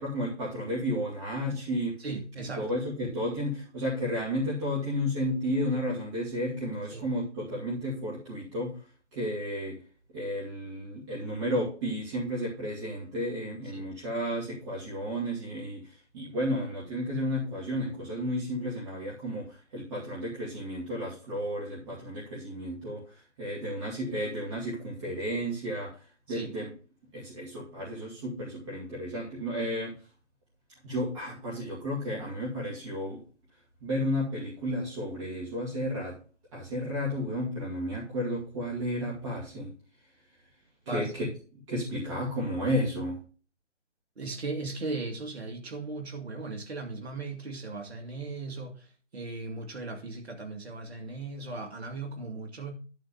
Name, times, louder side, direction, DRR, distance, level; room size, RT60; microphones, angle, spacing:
voice 1, 0.0-1.9 2.6-8.8 9.1-9.7 10.1-23.0 23.4-26.0 26.3-26.7 27.1-29.9 30.8-33.2 33.8-36.2 36.5-39.7 40.9-41.3 41.7-43.2, equal, 25° right, 2.5 m, -32 dB
voice 2, 2.0-2.7 6.9-7.1 13.7-13.8 26.3-26.5 40.9-41.3 44.2-48.9 49.1-52.8, right 3 dB, 60° right, 2.3 m, -37 dB
10.5 x 3.9 x 6.9 m
figure-of-eight pair, 150°, 36 cm